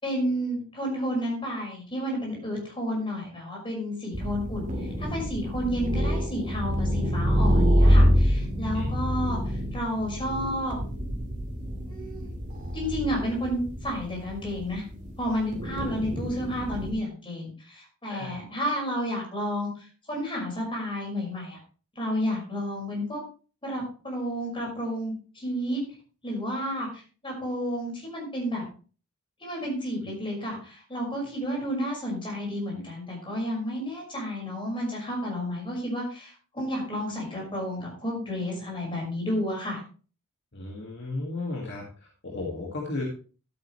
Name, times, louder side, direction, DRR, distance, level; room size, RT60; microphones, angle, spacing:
voice 1, 0.0-10.8 11.9-12.3 12.7-14.8 15.2-21.6 22.0-23.2 23.6-25.8 26.2-28.6 29.4-39.8, equal, 25° left, -1 dB, 5.6 m, -31 dB
sound 1, 4.1-16.9, equal, 35° right, 2.4 m, -26 dB
voice 2, 40.5-43.0, left 2 dB, 55° left, -1 dB, 2.2 m, -34 dB
12.0 x 9.2 x 3.3 m, 0.37 s
head